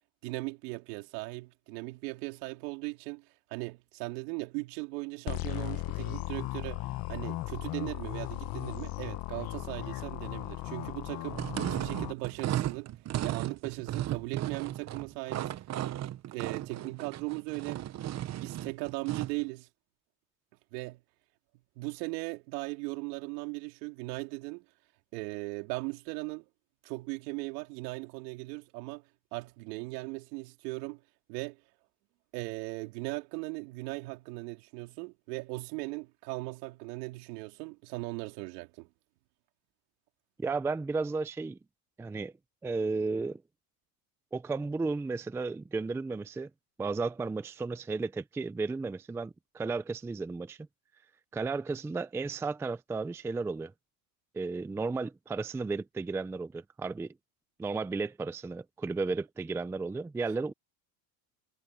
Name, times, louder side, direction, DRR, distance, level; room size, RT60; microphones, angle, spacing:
voice 1, 0.2-12.9 13.2-15.7 16.3-17.8 18.4-19.7 20.7-21.0 21.8-24.7 25.1-26.5 26.8-29.0 29.3-31.0 31.3-31.6 32.3-38.9, right 26 dB, 75° right, 3.6 m, -38 dB
sound 1, 5.3-12.1, left 18 dB, 45° left, 1.4 m, -37 dB
sound 2, 11.3-19.4, right 13 dB, 35° right, 1.0 m, -35 dB
voice 2, 40.4-41.6 42.0-42.3 42.6-43.4 44.3-46.5 46.8-50.6 51.3-53.7 54.3-57.1 57.6-60.5, right 4 dB, 5° right, 0.5 m, -33 dB
supercardioid pair, 135°, 48 cm